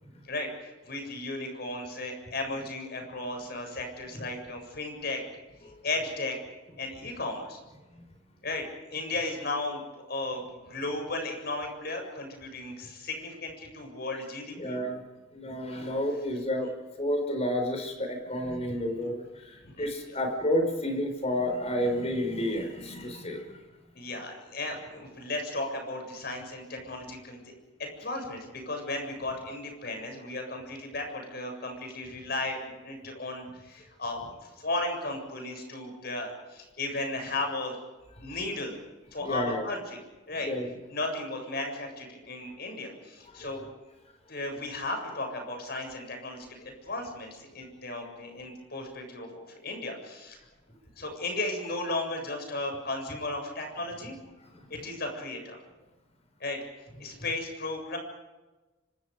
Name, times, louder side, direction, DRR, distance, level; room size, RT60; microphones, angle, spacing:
voice 1, 0.2-5.2 5.8-6.4 6.8-7.6 8.4-14.8 19.6-20.2 23.9-27.5 27.8-37.8 38.2-38.7 39.1-40.0 40.3-40.5 40.9-43.6 44.3-50.4 51.0-54.1 54.7-55.6 56.4-56.6 57.0-58.0, left 2 dB, 55° left, 4 dB, 7.5 m, -35 dB
voice 2, 14.6-15.0 15.3-16.7 17.0-23.5 39.2-39.6 40.4-40.7 43.3-43.5, equal, 35° left, 5 dB, 5.5 m, -30 dB
26.5 x 25.5 x 5.3 m, 1.1 s
head